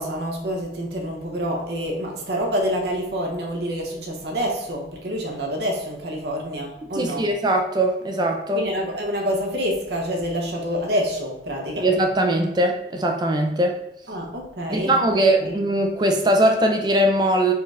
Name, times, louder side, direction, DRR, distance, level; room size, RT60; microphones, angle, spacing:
voice 1, 0.0-7.3 8.5-11.9 14.1-15.0 15.4-15.5, equal, 60° right, 0 dB, 0.7 m, -27 dB
voice 2, 6.9-8.7 11.8-13.8 14.7-17.5, right 1 dB, 20° right, 3 dB, 0.3 m, -20 dB
4.3 x 2.4 x 3.2 m, 0.86 s
head